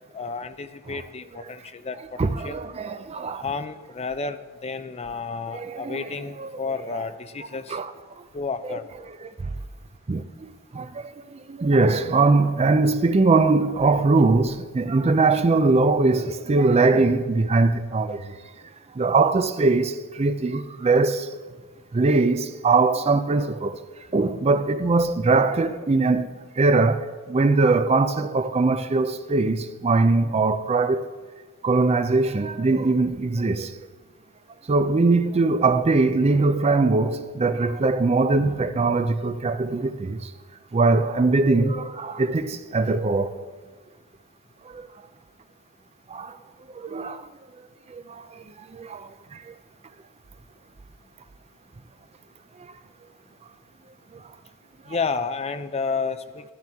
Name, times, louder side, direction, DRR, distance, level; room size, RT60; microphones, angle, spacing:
voice 1, 0.1-2.6 3.4-7.8 8.3-8.9 54.9-56.5, left 4 dB, 30° left, 0.5 m, -31 dB
voice 2, 2.2-3.5 5.5-6.5 7.7-7.9 8.7-8.8 9.1-9.5 10.1-18.3 19.0-21.3 21.9-23.8 24.1-31.1 31.6-33.7 34.7-40.3 40.7-43.3 44.7-44.9 46.1-46.4 46.7-47.3 47.9-48.4 48.7-49.5 54.1-54.2, right 3 dB, 30° right, 0.4 m, -21 dB
13.5 x 11.5 x 3.5 m
head